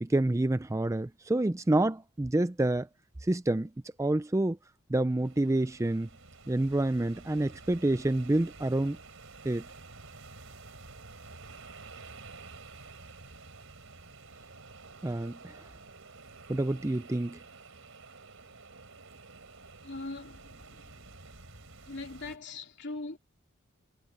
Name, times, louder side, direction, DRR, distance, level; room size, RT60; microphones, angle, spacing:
voice 1, 0.0-2.9 3.2-3.7 4.0-4.6 4.9-6.1 6.5-9.0 9.4-9.6 15.0-15.6 16.5-17.4, right 1 dB, 15° right, 0.4 m, -28 dB
sound 1, 5.1-22.4, right 3 dB, 65° right, 4.1 m, -50 dB
voice 2, 19.8-21.0 21.9-23.2, left 2 dB, 50° left, 3.1 m, -41 dB
head